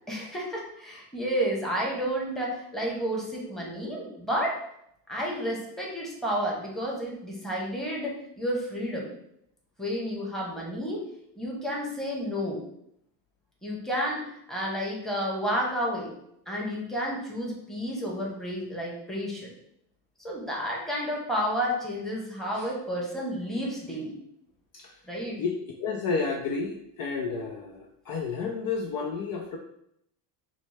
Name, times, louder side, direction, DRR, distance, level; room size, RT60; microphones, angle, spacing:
voice 1, 0.1-4.6 5.1-9.1 9.8-11.0 11.3-12.6 13.6-16.1 16.5-19.5 20.2-24.2 25.1-25.4, equal, ahead, -4 dB, 1.2 m, -31 dB
voice 2, 25.8-29.6, left 5 dB, 45° left, 1 dB, 0.6 m, -31 dB
5.9 x 2.2 x 3.4 m, 0.74 s
supercardioid pair, 110°, 49 cm